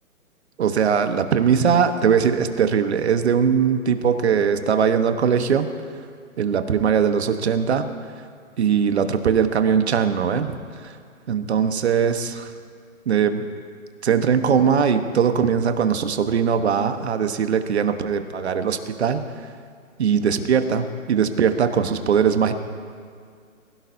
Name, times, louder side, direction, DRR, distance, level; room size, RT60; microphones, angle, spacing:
voice 1, 0.6-5.7 6.4-7.9 8.6-10.6 10.8-10.9 11.3-12.5 13.1-13.5 14.0-19.2 20.0-22.5, right 7 dB, 50° right, 8 dB, 1.2 m, -20 dB
23.5 x 16.5 x 2.7 m, 2.2 s
hypercardioid pair, 160°, 42 cm